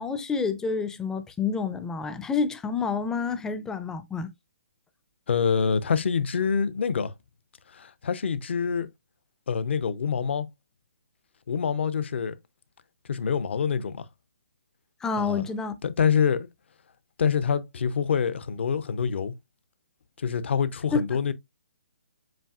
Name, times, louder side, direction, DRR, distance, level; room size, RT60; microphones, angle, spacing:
voice 1, 0.0-4.3 15.0-15.8 20.9-21.2, left 5 dB, 10° left, 0.5 m, -28 dB
voice 2, 5.3-7.1 7.7-8.9 9.5-10.5 11.5-12.4 13.1-14.1 15.2-15.4 15.8-16.5 17.2-19.3 20.2-21.3, left 6 dB, 60° left, 0.7 m, -26 dB
7.5 x 2.5 x 2.4 m
figure-of-eight pair, 140°, 7 cm